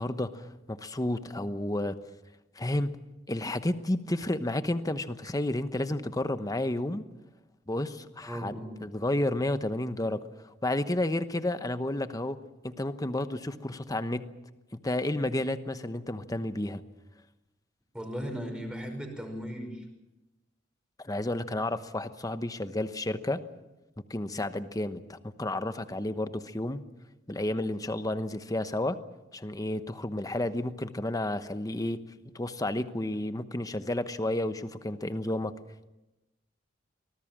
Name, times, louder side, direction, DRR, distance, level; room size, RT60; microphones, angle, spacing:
voice 1, 0.0-2.0 2.6-3.0 3.3-7.1 7.7-8.5 8.8-12.4 12.6-14.3 14.7-16.8 21.0-23.4 24.1-26.8 27.3-29.0 29.3-32.0 32.3-35.5, left 1 dB, 20° left, 11 dB, 1.1 m, -31 dB
voice 2, 8.2-8.8 17.9-19.8, equal, 5° right, 4 dB, 5.7 m, -37 dB
25.0 x 19.5 x 7.5 m, 1.0 s
head